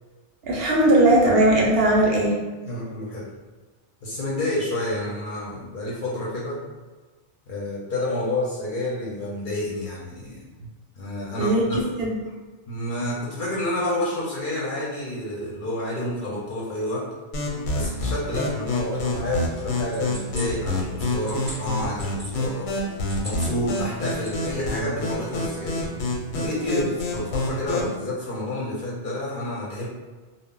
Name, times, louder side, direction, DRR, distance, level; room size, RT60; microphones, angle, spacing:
voice 1, 0.4-2.4 11.4-12.2, right 1 dB, 65° right, -3 dB, 0.7 m, -19 dB
voice 2, 2.6-3.2 4.0-6.6 7.5-10.4 11.0-11.8 12.7-17.0 17.7-22.7 23.2-25.8 26.3-29.9, left 1 dB, 55° left, -5 dB, 0.7 m, -29 dB
sound 1, 17.3-28.0, left 2 dB, 90° left, 0.9 m, -28 dB
sound 2, 19.5-22.3 22.9-23.6 23.9-24.7, equal, 15° right, 0.5 m, -40 dB
2.0 x 2.0 x 3.6 m, 1.3 s
omnidirectional pair, 1.2 m